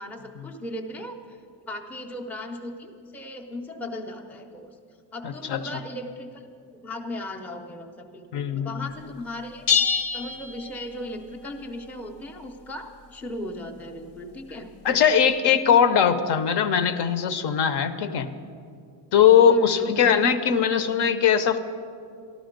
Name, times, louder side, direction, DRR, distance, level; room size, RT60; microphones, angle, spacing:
voice 1, 0.0-1.4 1.7-4.7 5.1-6.4 6.7-9.7 10.1-14.7 19.5-20.0, left 1 dB, 5° left, 2 dB, 0.5 m, -37 dB
voice 2, 5.2-5.6 8.3-8.8 14.8-18.3 19.1-21.6, left 8 dB, 65° left, 11 dB, 0.7 m, -20 dB
sound 1, 9.7-11.3, left 6 dB, 90° left, 1.1 m, -25 dB
13.0 x 12.5 x 5.1 m, 2.4 s
cardioid pair, 175°, 44 cm